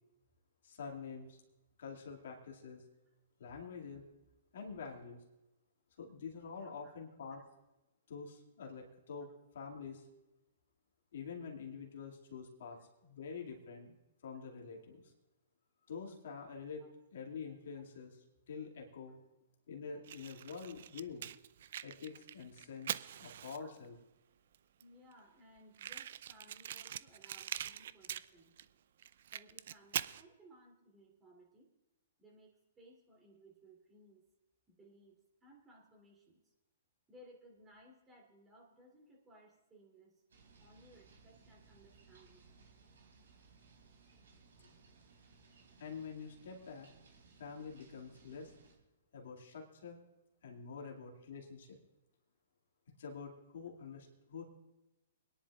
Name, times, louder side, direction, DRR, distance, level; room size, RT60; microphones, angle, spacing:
voice 1, 0.6-1.4 1.8-2.8 3.4-4.0 4.5-5.2 6.0-7.4 8.1-9.3 9.5-10.1 11.1-13.9 14.2-15.0 15.9-16.8 17.1-19.2 19.7-21.3 21.8-24.0 45.8-46.9 47.4-48.5 49.1-50.0 50.4-51.8 53.0-54.4, left 5 dB, 65° left, 0 dB, 2.2 m, -47 dB
voice 2, 6.6-6.9 7.3-7.4 16.8-16.9 17.5-17.6 20.6-20.7 23.6-23.7 24.8-28.6 29.3-31.7 32.2-34.2 34.7-36.5 37.1-40.2 40.6-42.7 50.8-50.9, right 1 dB, 15° right, -2 dB, 2.9 m, -62 dB
Fire, 20.0-23.9 24.5-24.6 24.8-24.9 25.1-25.2 25.7-28.7 29.0-30.2, right 10 dB, 60° right, 0.4 m, -43 dB
sound 1, 40.3-48.8, right 4 dB, 75° right, 3.5 m, -63 dB
26.0 x 10.5 x 2.4 m, 0.98 s
hypercardioid pair, 125°, 0 cm